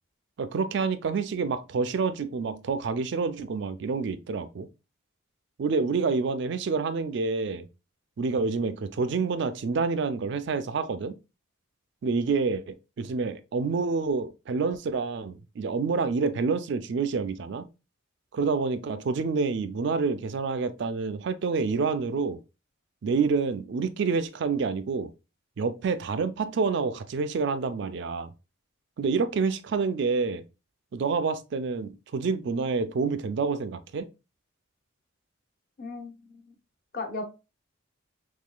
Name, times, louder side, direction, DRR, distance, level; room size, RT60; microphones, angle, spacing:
voice 1, 0.4-4.7 5.6-7.6 8.2-11.2 12.0-17.7 18.3-22.4 23.0-25.1 25.6-28.3 29.0-30.4 30.9-34.1, right 4 dB, 55° right, 0.3 m, -28 dB
voice 2, 35.8-36.6 36.9-37.2, left 3 dB, 45° left, 0.6 m, -36 dB
3.6 x 3.1 x 2.2 m
head